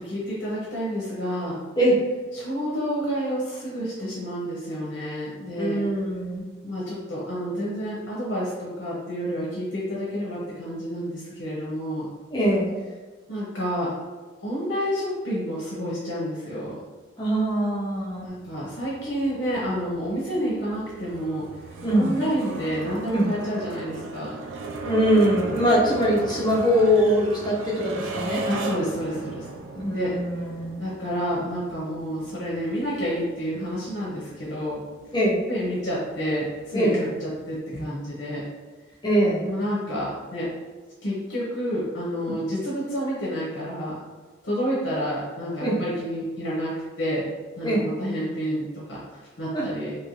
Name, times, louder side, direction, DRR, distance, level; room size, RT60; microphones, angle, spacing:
voice 1, 0.0-1.6 2.3-5.8 6.6-12.1 13.3-13.9 14.4-16.8 18.2-24.4 25.8-25.9 28.5-30.1 30.8-34.8 35.5-38.4 39.4-40.5 41.0-44.0 44.4-47.3 47.6-50.0, equal, 65° left, -7 dB, 0.7 m, -29 dB
voice 2, 5.6-6.4 12.3-12.8 17.2-18.3 21.8-22.1 23.1-23.3 24.8-28.4 29.7-30.8 35.1-35.4 36.7-37.0 39.0-39.4 45.6-45.8 47.6-47.8 49.5-49.7, equal, 20° left, -5 dB, 0.6 m, -22 dB
sound 1, 18.3-37.6, right 3 dB, 85° right, 0.3 m, -38 dB
2.8 x 2.5 x 3.0 m, 1.3 s
head